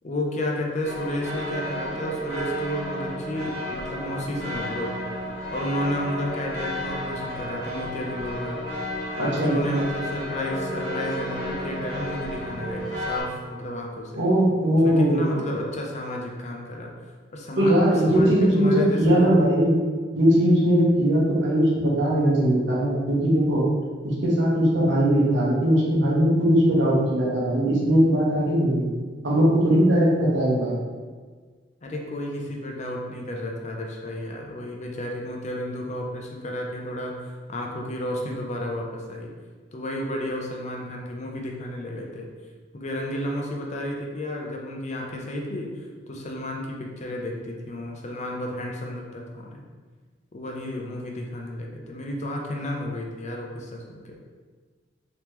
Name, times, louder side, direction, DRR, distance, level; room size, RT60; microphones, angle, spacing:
voice 1, 0.0-4.9 5.5-8.6 9.2-14.2 14.8-16.9 17.3-17.8 18.0-19.3 31.8-39.3 39.7-42.3 42.7-49.6 50.3-54.2, left 1 dB, 40° left, 0 dB, 0.5 m, -32 dB
sound 1, 0.8-13.2, equal, 10° left, 1.2 m, -32 dB
voice 2, 9.2-9.8 14.2-15.4 17.6-19.7 20.1-23.6 24.0-28.9 29.2-30.8, equal, 75° right, -5 dB, 1.1 m, -20 dB
3.4 x 3.0 x 3.0 m, 1.5 s
head